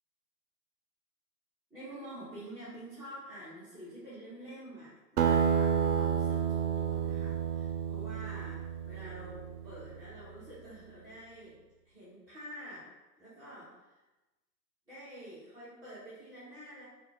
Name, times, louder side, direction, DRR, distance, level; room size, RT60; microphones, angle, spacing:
voice 1, 1.7-11.6 11.8-12.9 13.2-13.9 14.9-16.8, right 1 dB, 5° right, -17 dB, 1.2 m, -48 dB
Acoustic guitar, 5.2-10.0, right 8 dB, 70° right, 0.6 m, -30 dB
4.1 x 2.7 x 3.3 m, 1.1 s
figure-of-eight pair, 130°, 48 cm